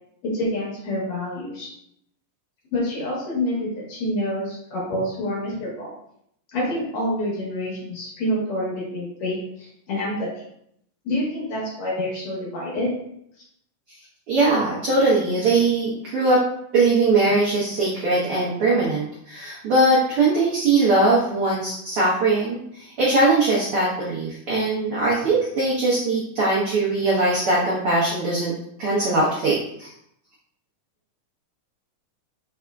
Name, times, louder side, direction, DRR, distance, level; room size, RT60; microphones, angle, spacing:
voice 1, 0.2-1.7 2.7-5.9 6.5-10.3 11.0-12.9, left 1 dB, 65° left, -5 dB, 2.2 m, -27 dB
voice 2, 14.3-16.4 16.7-28.5 28.8-29.9, right 2 dB, 80° right, -7 dB, 1.2 m, -21 dB
4.8 x 3.5 x 2.3 m, 0.72 s
omnidirectional pair, 3.7 m